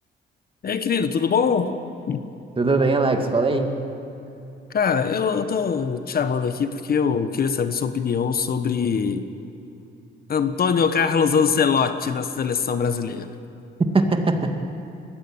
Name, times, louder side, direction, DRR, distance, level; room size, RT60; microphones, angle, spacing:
voice 1, 0.6-1.8 2.1-2.2 4.7-9.3 10.3-13.3, left 6 dB, 50° left, 10 dB, 1.2 m, -22 dB
voice 2, 2.6-3.8 13.9-14.5, right 3 dB, 25° right, 5 dB, 2.2 m, -20 dB
21.0 x 16.5 x 8.9 m, 2.9 s
cardioid pair, 90°, 20 cm